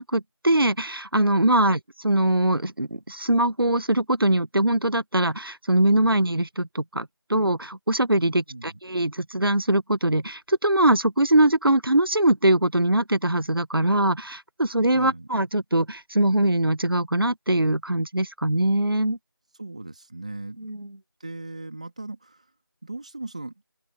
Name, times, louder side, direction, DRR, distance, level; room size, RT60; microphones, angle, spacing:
voice 1, 0.0-19.2 20.6-20.9, right 1 dB, 70° right, 1.3 m, -22 dB
voice 2, 8.5-8.8 14.9-15.3 19.5-20.7 21.2-22.5 22.8-23.5, right 2 dB, 15° right, 2.7 m, -38 dB
open air
figure-of-eight pair, 175°, 12 cm